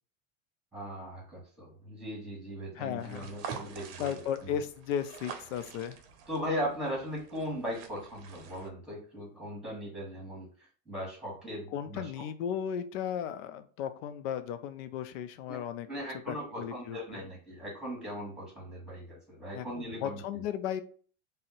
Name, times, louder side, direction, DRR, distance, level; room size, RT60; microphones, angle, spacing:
voice 1, 0.7-4.6 6.3-10.5 10.9-12.1 15.5-15.6 15.9-20.2, equal, ahead, -2 dB, 1.3 m, -38 dB
voice 2, 2.8-3.3 4.0-6.0 11.7-15.9 16.3-17.2 19.5-20.8, left 9 dB, 75° left, 11 dB, 0.5 m, -35 dB
sound 1, 3.0-8.7, right 7 dB, 60° right, 0.6 m, -46 dB
2.7 x 2.1 x 3.9 m, 0.43 s
supercardioid pair, 130°, 40 cm